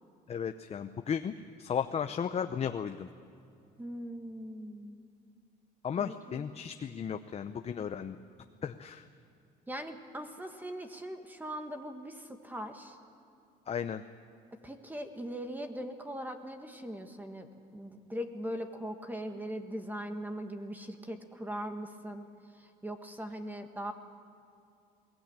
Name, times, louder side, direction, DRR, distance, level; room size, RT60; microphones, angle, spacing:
voice 1, 0.3-3.1 5.8-8.2 8.6-9.1 13.7-14.0, left 7 dB, 40° left, 8 dB, 0.7 m, -35 dB
voice 2, 3.8-5.0 6.0-6.4 9.7-13.0 14.6-17.5 17.7-22.3 22.5-23.9, equal, 10° right, 5 dB, 1.7 m, -40 dB
22.5 x 18.5 x 8.9 m, 2.6 s
cardioid pair, 110°, 17 cm